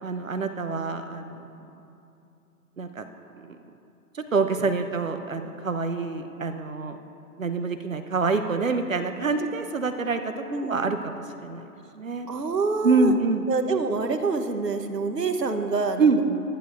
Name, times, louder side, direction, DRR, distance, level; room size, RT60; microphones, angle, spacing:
voice 1, 0.0-1.5 2.8-3.1 3.4-3.6 4.1-7.0 7.4-11.2 11.4-11.7 11.9-12.3 12.8-13.5 16.0-16.2, right 4 dB, 55° right, 8 dB, 0.7 m, -26 dB
voice 2, 10.5-10.8 12.3-13.1 13.5-16.4, right 4 dB, 80° right, 6 dB, 1.2 m, -26 dB
23.0 x 10.5 x 2.6 m, 2.7 s
figure-of-eight pair, 160°, 48 cm